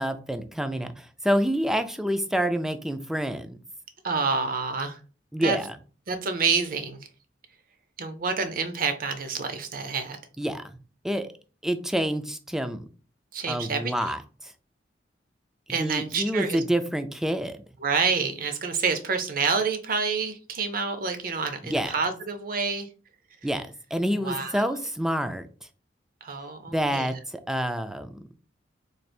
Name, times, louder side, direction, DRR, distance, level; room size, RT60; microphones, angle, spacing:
voice 1, 0.0-3.6 5.3-5.7 10.4-10.8 11.0-11.3 11.6-12.8 13.5-14.5 15.8-17.6 21.6-21.9 23.4-25.5 26.7-28.1, equal, 5° right, 9 dB, 0.3 m, -27 dB
voice 2, 4.0-5.0 5.4-5.6 6.1-7.0 8.0-10.2 13.3-14.1 15.7-16.6 17.8-22.9 24.2-24.7 26.2-27.1, right 5 dB, 50° right, 8 dB, 0.6 m, -28 dB
3.2 x 2.4 x 4.3 m, 0.37 s
head